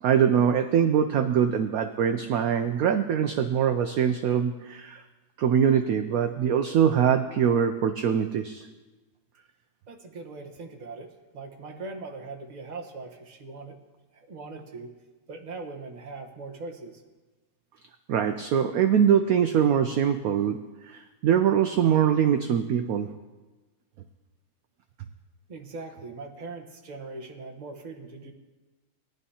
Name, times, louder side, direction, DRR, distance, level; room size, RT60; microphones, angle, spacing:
voice 1, 0.0-5.0 5.4-8.7 18.1-20.6 20.9-23.1, right 8 dB, 70° right, 8 dB, 0.9 m, -23 dB
voice 2, 9.9-11.1 11.3-13.8 14.1-14.9 15.3-17.0 25.5-28.3, right 3 dB, 30° right, 1 dB, 1.0 m, -40 dB
19.0 x 10.5 x 2.8 m, 1.2 s
omnidirectional pair, 1.9 m